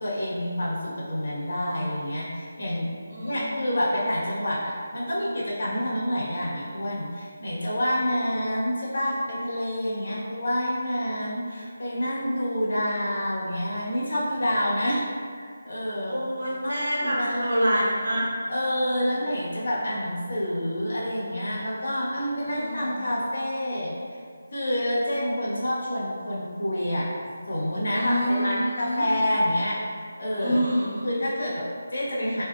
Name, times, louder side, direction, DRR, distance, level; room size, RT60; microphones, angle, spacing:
voice 1, 0.0-2.9 3.2-15.0 15.3-16.2 16.6-17.8 18.5-23.9 24.5-27.1 27.5-29.8 30.2-30.6 31.0-32.4, equal, 60° left, -8 dB, 1.4 m, -28 dB
voice 2, 3.1-3.7 10.0-10.2 16.1-18.2 18.9-19.2 22.4-23.0 27.9-29.0 30.4-31.1, equal, 75° right, -6 dB, 1.2 m, -27 dB
4.2 x 3.4 x 2.4 m, 2.1 s
figure-of-eight pair, 175°, 0 cm